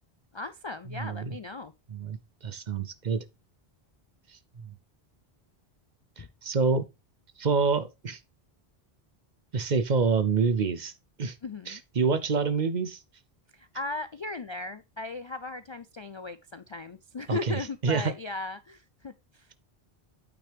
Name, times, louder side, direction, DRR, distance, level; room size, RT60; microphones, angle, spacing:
voice 1, 0.3-1.7 6.2-6.3 11.4-11.8 13.5-19.5, left 3 dB, 45° left, 0.3 m, -37 dB
voice 2, 0.9-1.4 1.9-2.2 2.4-3.2 6.2-6.8 7.4-8.2 9.5-10.9 11.2-11.3 11.7-13.0 17.3-18.1, right 5 dB, 50° right, 0.8 m, -27 dB
8.8 x 5.9 x 3.4 m
omnidirectional pair, 1.0 m